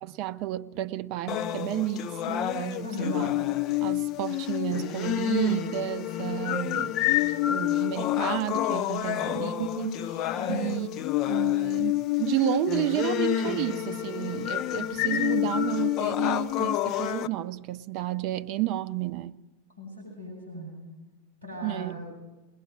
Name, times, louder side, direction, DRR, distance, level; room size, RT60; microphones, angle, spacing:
voice 1, 0.0-3.3 3.8-7.0 7.5-10.2 10.5-10.9 11.3-19.4 21.6-21.9, right 15 dB, 45° right, 0.6 m, -31 dB
sound 1, 1.3-17.3, left 13 dB, 35° left, 0.6 m, -28 dB
voice 2, 2.8-3.3 9.0-9.5 10.4-10.8 19.8-20.8 21.4-22.0, left 1 dB, 80° left, 7.2 m, -38 dB
21.0 x 20.0 x 6.3 m
figure-of-eight pair, 90°, 0 cm